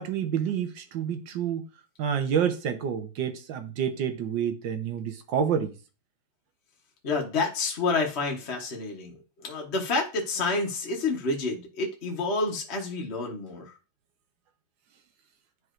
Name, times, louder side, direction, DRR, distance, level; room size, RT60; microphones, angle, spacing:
voice 1, 0.0-1.6 2.0-5.7, right 8 dB, 75° right, 1.6 m, -28 dB
voice 2, 7.0-13.8, left 3 dB, 40° left, 1.1 m, -29 dB
11.0 x 4.8 x 2.5 m
omnidirectional pair, 2.1 m